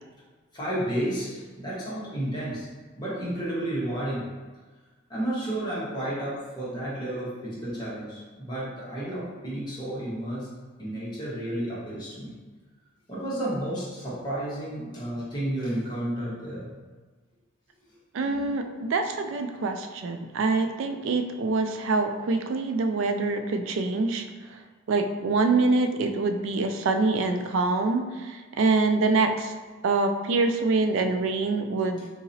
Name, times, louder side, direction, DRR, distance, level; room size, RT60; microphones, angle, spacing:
voice 1, 0.5-2.7 3.0-4.3 5.1-10.5 10.8-12.3 13.1-16.7 32.0-32.1, right 1 dB, 20° left, -9 dB, 1.1 m, -32 dB
voice 2, 18.1-24.2 24.9-29.5 29.8-32.0, right 3 dB, 60° right, 6 dB, 0.3 m, -25 dB
3.9 x 2.8 x 2.7 m, 1.4 s
head